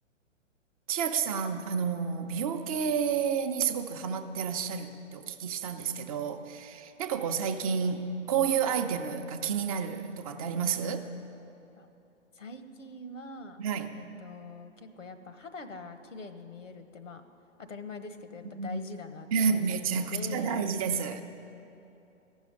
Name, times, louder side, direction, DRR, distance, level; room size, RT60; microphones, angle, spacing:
voice 1, 0.9-11.1 13.6-13.9 18.5-18.8 19.3-21.2, right 6 dB, 30° right, 6 dB, 0.6 m, -30 dB
voice 2, 12.3-13.6 13.9-17.2 17.6-19.6 20.1-20.6, left 3 dB, 80° left, 9 dB, 1.2 m, -43 dB
14.5 x 6.3 x 9.6 m, 2.8 s
figure-of-eight pair, 125°, 38 cm